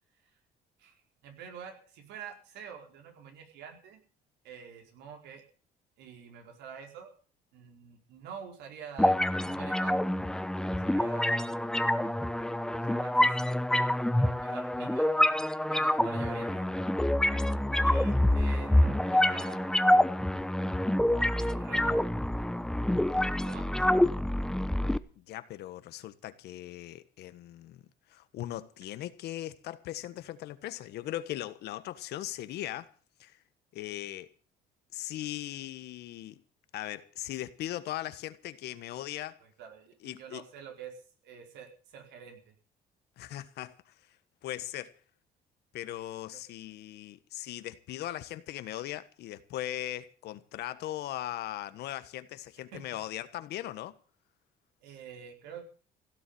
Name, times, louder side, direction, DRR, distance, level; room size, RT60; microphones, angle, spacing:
voice 1, 0.8-4.0 4.4-5.4 6.0-7.1 7.5-10.1 10.7-11.5 12.7-13.4 14.2-15.2 15.6-16.7 17.8-19.7 21.3-22.1 23.4-24.2 39.4-42.4 46.3-46.4 52.7-53.0 54.8-55.6, right 7 dB, 85° right, 4.5 m, -47 dB
sound 1, 9.0-25.0, left 1 dB, 5° left, 0.8 m, -27 dB
voice 2, 25.2-27.8 28.1-32.9 33.2-33.4 33.7-34.3 34.9-36.4 36.7-39.4 40.0-40.5 43.2-43.9 44.4-44.9 45.7-53.9, left 13 dB, 75° left, 1.4 m, -39 dB
16.5 x 7.3 x 9.8 m
cardioid pair, 110°, 17 cm